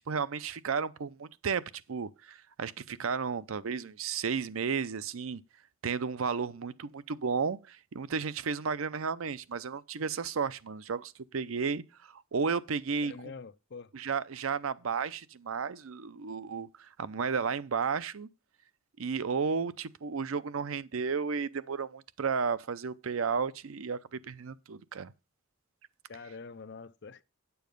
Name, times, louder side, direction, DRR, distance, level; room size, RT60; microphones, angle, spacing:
voice 1, 0.0-1.6 1.9-5.4 5.8-13.1 13.9-18.3 19.0-25.1, right 5 dB, 80° right, 0.6 m, -33 dB
voice 2, 13.0-13.9 26.1-27.2, left 4 dB, 55° left, 0.5 m, -45 dB
9.3 x 7.0 x 5.2 m
head